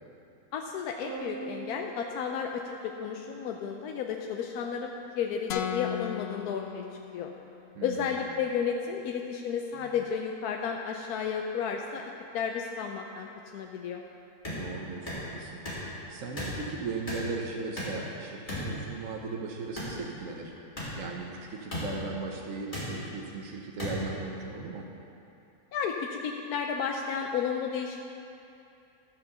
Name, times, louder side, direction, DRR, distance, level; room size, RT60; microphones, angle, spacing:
voice 1, 0.5-6.8 7.1-7.3 7.8-12.0 12.3-13.3 13.5-14.0 25.7-28.0, left 7 dB, 85° left, 2 dB, 1.1 m, -32 dB
sound 1, 1.0-3.6, right 5 dB, 90° right, 1.3 m, -43 dB
sound 2, 5.5-7.6, left 9 dB, 70° left, 0.6 m, -36 dB
voice 2, 7.7-8.2 14.4-15.6 16.1-20.5 21.0-24.8, right 4 dB, 60° right, 0 dB, 1.2 m, -37 dB
sound 3, 14.4-14.6 15.0-15.2 15.6-15.8 16.4-16.5 17.1-17.2 17.8-18.0 18.5-18.7 19.7-19.9 20.8-20.9 21.7-21.8 22.7-22.9 23.8-23.9, left 1 dB, 30° left, 3.1 m, -35 dB
12.0 x 5.7 x 6.8 m, 2.8 s
omnidirectional pair, 1.6 m